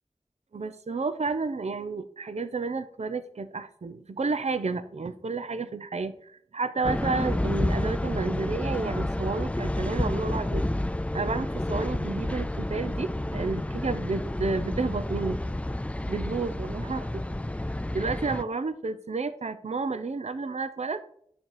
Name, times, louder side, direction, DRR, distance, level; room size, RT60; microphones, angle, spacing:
voice 1, 0.5-10.6 11.1-15.4 16.1-17.0 17.9-21.0, right 4 dB, 65° right, 12 dB, 0.7 m, -31 dB
sound 1, 6.8-18.4, left 1 dB, 10° left, 0.4 m, -30 dB
10.5 x 7.1 x 4.8 m, 0.65 s
wide cardioid pair, 65°, 12 cm